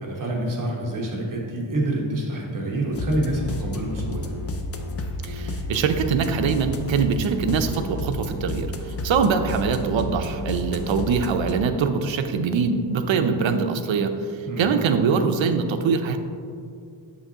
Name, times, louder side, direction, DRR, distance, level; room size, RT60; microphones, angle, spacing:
voice 1, 0.0-4.3 14.5-14.7, right 1 dB, 40° right, -2 dB, 1.1 m, -27 dB
sound 1, 2.9-11.5, left 1 dB, 35° left, 0.4 m, -31 dB
voice 2, 5.2-14.2 14.6-16.2, right 5 dB, 70° right, 7 dB, 0.6 m, -23 dB
7.7 x 5.7 x 2.8 m, 2.3 s
wide cardioid pair, 160°, 47 cm